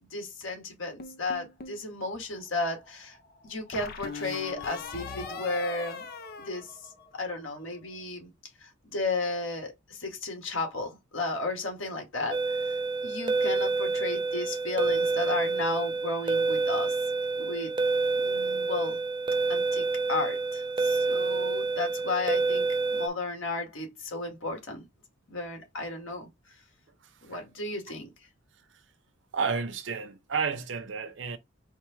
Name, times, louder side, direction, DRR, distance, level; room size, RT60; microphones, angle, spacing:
voice 1, 0.0-3.2 3.4-6.1 6.4-8.3 8.6-12.8 13.0-17.0 17.4-17.7 18.2-19.0 19.5-24.8 25.3-26.3 27.2-28.1, left 3 dB, 90° left, 1.8 m, -34 dB
sound 1, 1.0-1.8 3.7-7.4, left 5 dB, 50° left, 0.6 m, -41 dB
sound 2, 2.2-8.0, left 3 dB, 25° left, 1.0 m, -49 dB
sound 3, 12.3-23.1, right 3 dB, 25° right, 0.4 m, -28 dB
voice 2, 27.0-27.4 29.3-31.4, right 5 dB, 65° right, 0.7 m, -32 dB
4.6 x 2.3 x 4.5 m
head